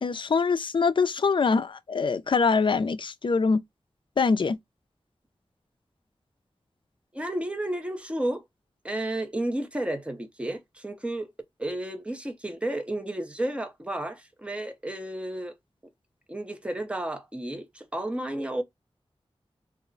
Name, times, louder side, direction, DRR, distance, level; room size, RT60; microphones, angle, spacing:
voice 1, 0.0-3.6 4.2-4.6, left 4 dB, 50° left, 0.4 m, -24 dB
voice 2, 7.1-8.4 8.8-11.3 11.6-15.5 16.3-18.6, right 1 dB, 10° right, 0.6 m, -32 dB
2.4 x 2.1 x 3.7 m
wide cardioid pair, 80°, 10 cm